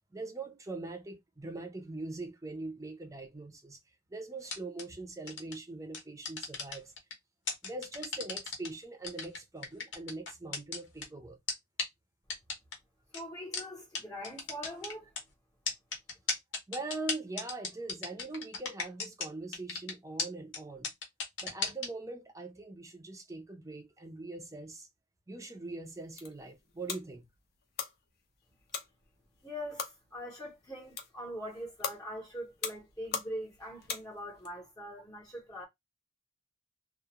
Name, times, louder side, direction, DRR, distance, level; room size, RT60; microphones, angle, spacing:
voice 1, 0.1-3.8 4.1-6.9 7.6-11.4 16.7-20.9 21.4-24.9 25.3-27.3, right 2 dB, 15° right, 0.6 m, -42 dB
sound 1, 4.4-4.8 5.3-5.5 5.9-7.1 7.5-8.7 9.0-11.0 11.5-11.6 11.8-11.9 12.3-12.7 13.1-13.2 13.5-13.6 13.9-14.0 14.2-15.2 15.7-19.3 19.5-19.9 20.2-20.3 20.5-20.6 20.8-21.9, left 4 dB, 80° left, 0.9 m, -34 dB
voice 2, 13.1-15.1 29.4-35.6, equal, 20° left, 0.8 m, -42 dB
Light Switch, 25.9-34.5, left 6 dB, 55° left, 0.6 m, -43 dB
2.3 x 2.1 x 2.9 m
head